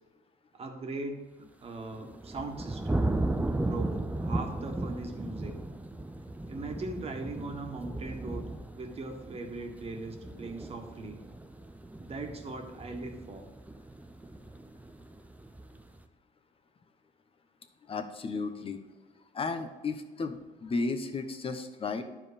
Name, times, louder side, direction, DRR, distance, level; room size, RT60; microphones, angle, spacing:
voice 1, 0.5-1.3 1.6-3.1 3.6-5.5 6.5-8.5 8.7-11.2 12.0-13.5, right 3 dB, 35° right, 3 dB, 1.7 m, -40 dB
sound 1, 1.8-16.0, right 2 dB, 10° right, 0.6 m, -36 dB
voice 2, 17.9-18.8 19.3-22.0, left 4 dB, 35° left, 8 dB, 1.0 m, -34 dB
11.0 x 4.9 x 5.2 m, 1.2 s
cardioid pair, 110°, 17 cm